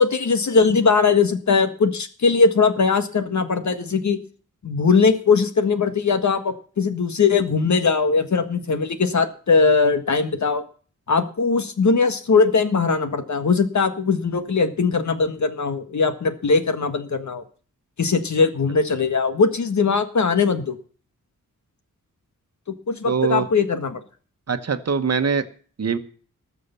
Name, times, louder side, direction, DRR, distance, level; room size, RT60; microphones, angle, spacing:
voice 1, 0.0-4.2 4.6-10.6 11.1-17.4 18.0-20.8 22.7-24.0, left 4 dB, 60° left, 9 dB, 1.6 m, -20 dB
voice 2, 23.0-23.5 24.5-25.4 25.8-26.0, right 6 dB, 50° right, 9 dB, 1.2 m, -22 dB
19.0 x 6.9 x 6.9 m, 0.42 s
wide cardioid pair, 160°, 32 cm